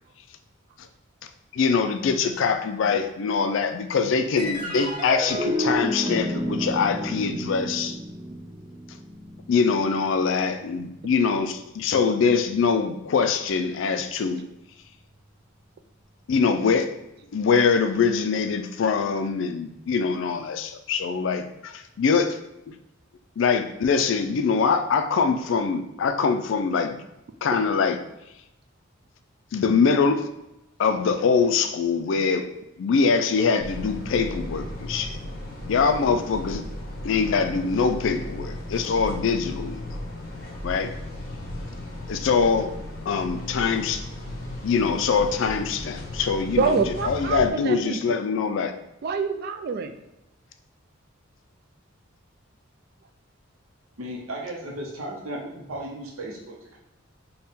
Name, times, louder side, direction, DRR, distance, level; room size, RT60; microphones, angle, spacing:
voice 1, 1.5-8.0 9.5-14.4 16.3-16.9 17.3-22.4 22.7-22.8 23.4-27.0 27.4-28.0 29.5-30.3 30.8-32.5 32.8-35.2 35.6-36.6 37.0-39.8 40.6-40.9 42.1-42.7 43.1-44.0 44.6-46.7 47.1-48.7, left 5 dB, 60° left, 8 dB, 0.3 m, -23 dB
sound 1, 4.4-11.0, equal, 20° right, 1.1 m, -31 dB
sound 2, 33.6-47.5, left 1 dB, 45° left, 0.7 m, -36 dB
voice 2, 46.6-48.2 49.0-50.0, right 5 dB, 50° right, 8 dB, 0.3 m, -26 dB
voice 3, 54.0-56.8, right 1 dB, 85° right, -2 dB, 0.7 m, -35 dB
4.1 x 2.2 x 3.5 m, 0.89 s
head